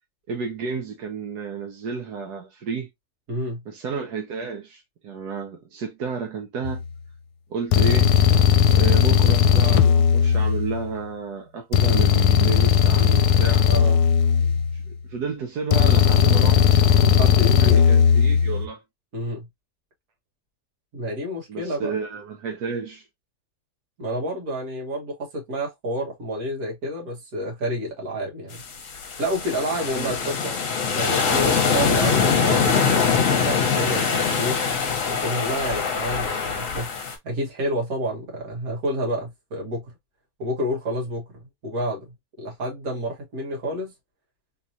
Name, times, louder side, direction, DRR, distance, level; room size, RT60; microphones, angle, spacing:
voice 1, 0.3-2.9 3.7-6.8 7.5-8.1 8.7-13.7 14.7-16.7 17.5-18.8 21.5-23.0 29.9-30.1, right 5 dB, 90° right, 1.4 m, -31 dB
voice 2, 3.3-3.6 13.7-14.0 17.0-17.8 19.1-19.5 20.9-21.9 24.0-28.6 29.2-30.5 30.9-34.6 35.1-36.9 37.2-39.8 40.4-41.2 41.6-43.9, equal, 70° right, 2.0 m, -29 dB
sound 1, 6.6-6.9 7.7-11.0 11.7-15.0 15.7-18.7, left 8 dB, 85° left, 1.1 m, -17 dB
sound 2, 28.5-37.2, left 6 dB, 60° left, 1.3 m, -23 dB
3.9 x 3.1 x 2.7 m
omnidirectional pair, 1.7 m